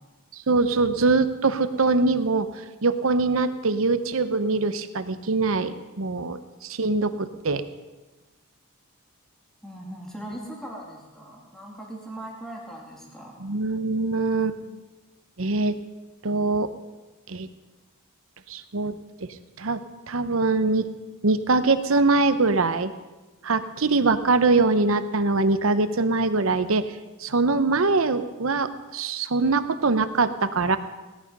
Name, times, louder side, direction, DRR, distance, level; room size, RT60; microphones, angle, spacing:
voice 1, 0.5-2.5 2.8-7.6 13.4-14.8 15.4-15.8 16.2-16.7 17.3-17.5 18.5-19.8 20.1-20.9 21.2-22.9 23.4-26.9 27.2-30.8, right 3 dB, 65° right, 11 dB, 0.9 m, -23 dB
voice 2, 9.6-13.4, right 1 dB, ahead, -2 dB, 2.3 m, -39 dB
17.0 x 11.0 x 5.4 m, 1.2 s
head